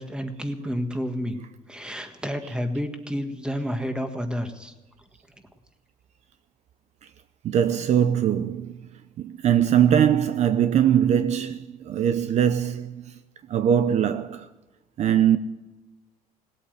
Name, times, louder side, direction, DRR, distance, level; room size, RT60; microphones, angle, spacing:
voice 1, 0.0-1.4 1.7-4.7, equal, 5° right, 1.6 m, -30 dB
voice 2, 7.4-8.9 9.2-13.2 13.5-14.5 15.0-15.4, right 9 dB, 50° right, 0.7 m, -21 dB
18.5 x 8.5 x 8.0 m
cardioid pair, 130°, 15 cm